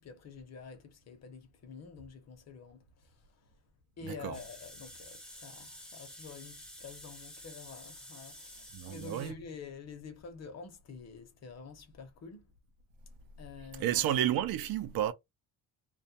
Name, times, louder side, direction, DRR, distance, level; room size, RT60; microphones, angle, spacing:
voice 1, 0.0-3.6 4.0-12.5 13.4-14.3, left 5 dB, 45° left, 0.8 m, -48 dB
voice 2, 4.0-4.4 8.7-9.3 13.8-15.1, right 12 dB, 70° right, 0.6 m, -31 dB
sound 1, 4.3-9.3, left 1 dB, ahead, 0.5 m, -50 dB
2.4 x 2.1 x 2.7 m
cardioid pair, 135°, 37 cm